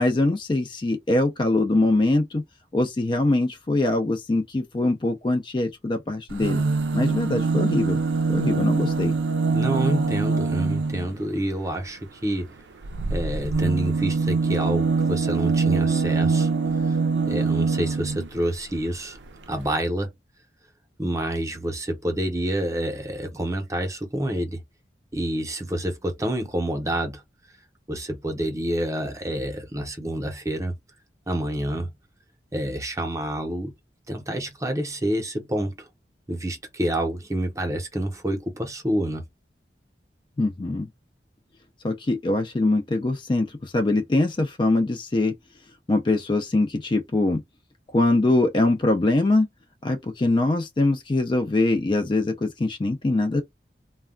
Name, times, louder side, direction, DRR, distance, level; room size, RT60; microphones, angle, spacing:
voice 1, 0.0-2.4 2.7-6.6 6.9-8.0 8.3-9.1 40.4-40.9 41.8-45.3 45.9-47.4 47.9-49.5 49.8-53.4, left 2 dB, 25° left, 0.4 m, -23 dB
sound 1, 6.3-11.2 12.8-18.3 19.2-19.3 19.5-19.6, right 4 dB, 85° right, 0.4 m, -23 dB
voice 2, 9.5-12.5 13.1-16.5 16.9-17.0 17.3-19.2 19.5-20.1 21.0-24.6 25.1-27.2 27.9-30.7 31.3-31.9 32.5-33.7 34.1-35.9 36.3-39.2, right 1 dB, 20° right, 0.7 m, -28 dB
2.2 x 2.1 x 3.6 m
head